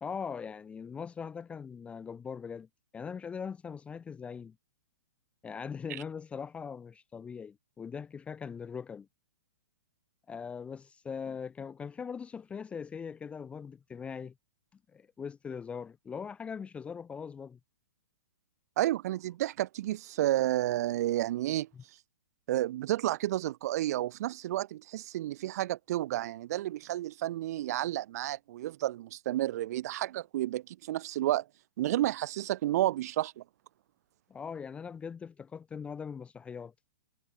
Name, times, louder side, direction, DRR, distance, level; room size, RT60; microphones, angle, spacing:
voice 1, 0.0-2.7 2.9-4.5 5.4-9.1 10.3-14.3 14.9-17.6 21.7-21.8 34.3-36.7, left 6 dB, 10° left, 0.8 m, -41 dB
voice 2, 18.8-21.7 22.5-31.4 31.8-33.4, right 14 dB, 50° right, 3.1 m, -31 dB
hypercardioid pair, 150°, 11 cm